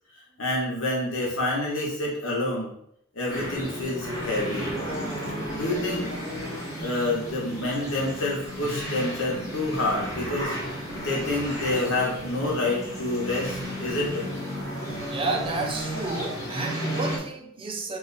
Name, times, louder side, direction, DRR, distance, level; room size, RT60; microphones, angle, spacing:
voice 1, 0.4-2.7 3.1-4.7 5.5-6.1 6.8-14.3, left 2 dB, 75° left, -3 dB, 1.2 m, -28 dB
sound 1, 3.3-17.2, equal, 15° left, 0.9 m, -33 dB
voice 2, 15.1-18.0, right 3 dB, 25° right, 2 dB, 0.4 m, -31 dB
2.8 x 2.4 x 4.1 m, 0.70 s
head